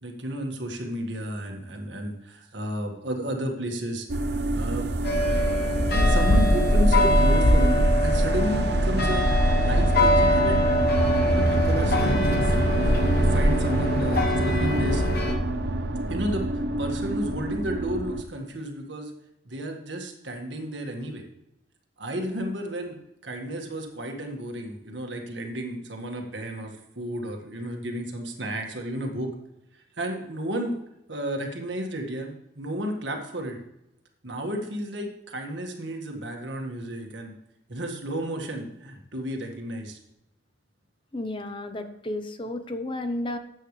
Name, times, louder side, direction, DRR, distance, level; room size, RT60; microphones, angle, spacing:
voice 1, 0.0-4.9 5.9-10.7 11.0-15.0 16.1-19.1 19.5-21.2 22.0-23.0 23.2-29.3 30.0-30.7 31.1-33.6 34.2-37.3 37.7-40.0, equal, 75° right, 3 dB, 1.8 m, -32 dB
sound 1, 4.1-18.2, right 1 dB, 60° right, 0.7 m, -25 dB
sound 2, 5.0-15.3, left 1 dB, 55° left, 1.1 m, -23 dB
voice 2, 41.1-43.4, left 1 dB, 25° left, 8 dB, 0.8 m, -32 dB
12.5 x 8.1 x 3.3 m, 0.85 s
head